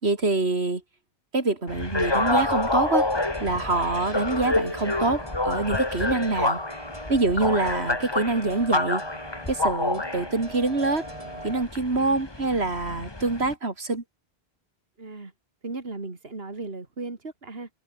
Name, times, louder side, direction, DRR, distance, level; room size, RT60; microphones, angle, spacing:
voice 1, 0.0-0.8 1.3-3.1 3.4-6.6 7.1-9.0 9.5-11.0 11.4-14.0, right 3 dB, 85° right, 3.5 m, -25 dB
sound 1, 1.7-13.5, left 2 dB, 25° left, 1.8 m, -28 dB
sound 2, 2.0-11.6, right 1 dB, 35° right, 5.7 m, -41 dB
voice 2, 15.0-15.3 15.6-17.7, right 3 dB, 70° right, 3.0 m, -36 dB
omnidirectional pair, 1.1 m